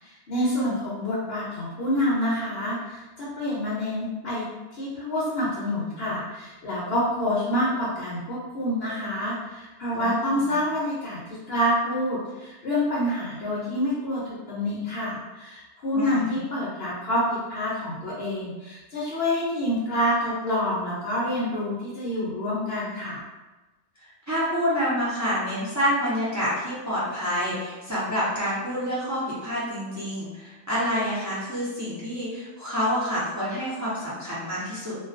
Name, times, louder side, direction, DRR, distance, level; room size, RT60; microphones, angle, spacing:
voice 1, 0.0-4.4 4.7-11.2 11.5-23.2, left 1 dB, 55° left, -7 dB, 0.7 m, -27 dB
voice 2, 9.9-10.5 15.9-16.4 24.0-35.0, equal, 25° right, -10 dB, 0.4 m, -28 dB
2.3 x 2.3 x 2.4 m, 1.1 s
omnidirectional pair, 1.5 m